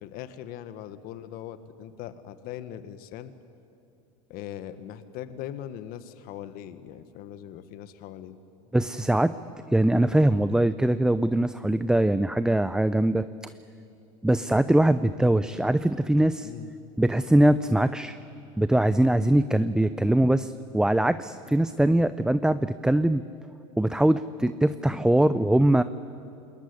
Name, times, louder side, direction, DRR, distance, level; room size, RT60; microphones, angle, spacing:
voice 1, 0.0-3.3 4.3-8.4 16.4-16.8 25.1-25.4, left 11 dB, 55° left, 11 dB, 1.5 m, -40 dB
voice 2, 8.7-9.3 9.7-13.3 14.2-16.5 17.0-18.2 18.6-23.2 23.8-25.8, right 1 dB, 5° right, 12 dB, 0.6 m, -22 dB
27.0 x 21.0 x 9.9 m, 2.6 s
hypercardioid pair, 100°, 18 cm